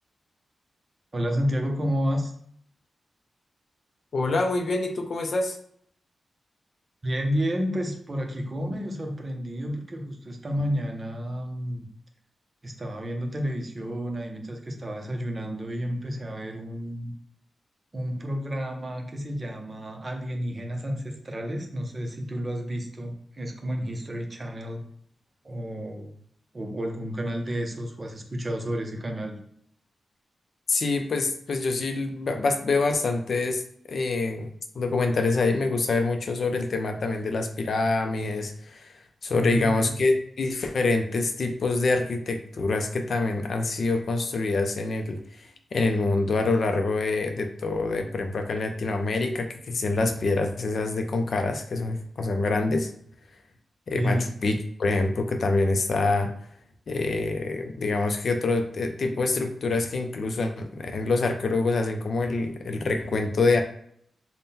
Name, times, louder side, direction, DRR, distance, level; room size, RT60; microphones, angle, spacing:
voice 1, 1.1-2.3 7.0-11.9 12.6-17.1 17.9-24.8 25.4-26.2 26.5-29.4 39.3-39.9 53.9-54.3, equal, 30° right, 3 dB, 0.6 m, -30 dB
voice 2, 4.1-5.6 30.7-33.6 33.9-34.5 34.7-38.9 39.2-52.9 53.9-56.3 56.9-63.6, left 3 dB, 55° left, 5 dB, 0.5 m, -26 dB
3.6 x 2.1 x 4.1 m, 0.67 s
wide cardioid pair, 145°, 0 cm